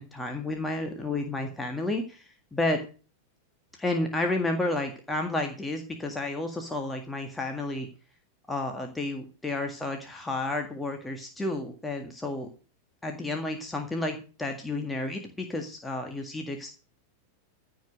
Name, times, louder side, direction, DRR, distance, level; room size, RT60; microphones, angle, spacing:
voice 1, 0.0-2.8 3.8-7.9 8.5-12.5 13.0-16.7, left 2 dB, 10° left, 3 dB, 1.9 m, -31 dB
15.5 x 5.3 x 7.6 m, 0.36 s
figure-of-eight pair, 90°, 0 cm